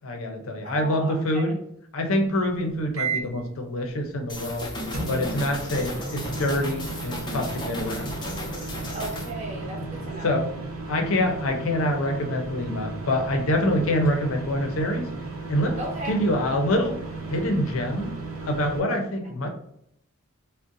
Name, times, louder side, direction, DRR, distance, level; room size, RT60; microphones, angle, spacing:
voice 1, 0.0-1.6 1.9-4.7 5.1-8.1 10.2-10.5 10.9-15.1 15.5-15.8 16.1-17.0 17.3-18.1 18.4-19.5, left 1 dB, 75° left, 4 dB, 0.5 m, -25 dB
voice 2, 0.6-1.6 8.9-10.3 15.8-16.2, right 1 dB, 35° right, -1 dB, 0.7 m, -35 dB
sound 1, 2.9-3.4 4.9-18.8, right 3 dB, 75° right, 0.7 m, -35 dB
sound 2, 4.3-9.3, left 1 dB, 20° left, 0.5 m, -34 dB
2.5 x 2.1 x 3.8 m, 0.73 s
head